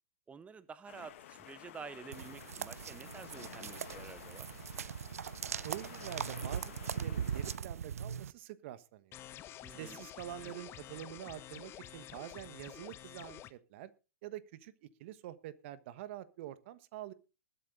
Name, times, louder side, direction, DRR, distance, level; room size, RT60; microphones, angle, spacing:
voice 1, 0.3-4.5 9.6-10.0 10.4-10.5, right 5 dB, 15° right, 16 dB, 0.7 m, -50 dB
sound 1, 0.9-7.6, left 13 dB, 60° left, 1.4 m, -52 dB
sound 2, 2.1-8.3, right 8 dB, 80° right, 0.5 m, -40 dB
voice 2, 5.6-9.2 9.7-13.9 14.2-17.1, right 13 dB, 55° right, 15 dB, 1.3 m, -46 dB
sound 3, 9.1-13.5, left 12 dB, 30° left, 1.0 m, -49 dB
20.5 x 8.2 x 3.7 m, 0.32 s
hypercardioid pair, 105°, 8 cm